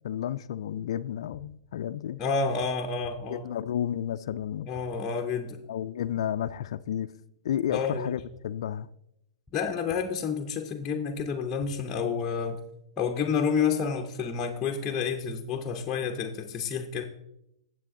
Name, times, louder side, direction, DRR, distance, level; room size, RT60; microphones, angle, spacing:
voice 1, 0.0-2.2 3.3-4.7 5.7-7.1 7.4-8.9, left 10 dB, 70° left, 0.3 m, -31 dB
sound 1, 1.3-1.4 2.6-2.7 3.0-3.1 4.3-4.4 4.7-4.9 6.0-6.1 6.4-6.5 7.7-7.8 8.2-8.3 9.4-9.5 9.9-10.0 11.2-11.3 11.6-11.7, left 3 dB, 5° right, 3.4 m, -53 dB
voice 2, 2.2-3.5 4.7-5.6 7.7-8.1 9.5-12.6 13.0-17.0, left 6 dB, 20° left, 0.7 m, -29 dB
9.3 x 7.6 x 3.7 m
hypercardioid pair, 135°, 3 cm